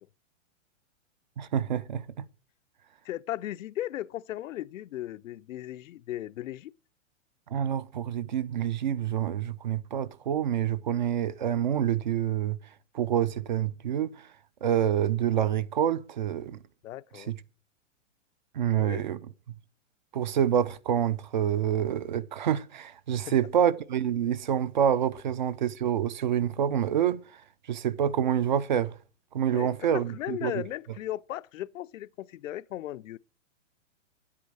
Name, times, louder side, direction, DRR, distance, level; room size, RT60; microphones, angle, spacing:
voice 1, 1.4-2.2 7.5-12.6 12.9-14.3 14.6-16.6 17.1-17.4 18.5-19.2 20.1-27.4 27.7-28.9 29.3-30.5, right 9 dB, 40° right, 0.4 m, -27 dB
voice 2, 3.0-6.7 16.8-17.3 18.7-19.1 23.2-23.3 29.5-33.2, left 13 dB, 85° left, 0.6 m, -36 dB
10.0 x 8.5 x 6.2 m
hypercardioid pair, 170°, 38 cm